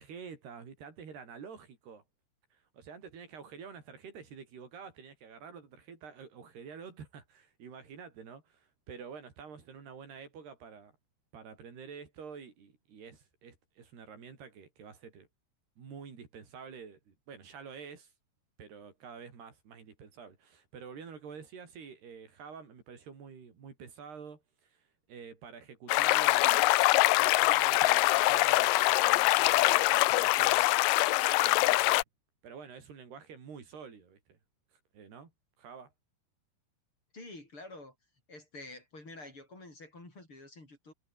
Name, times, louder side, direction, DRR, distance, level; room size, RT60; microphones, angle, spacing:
voice 1, 0.0-2.0 2.5-10.9 11.3-15.3 15.8-18.1 18.6-30.7 31.0-31.1 31.4-32.0 32.4-34.4 34.7-35.3 35.6-35.9, right 6 dB, 85° right, 6.8 m, -48 dB
sound 1, 25.9-32.0, left 19 dB, 90° left, 1.9 m, -24 dB
voice 2, 37.1-37.9 38.3-40.9, left 2 dB, 30° left, 8.3 m, -48 dB
omnidirectional pair, 4.5 m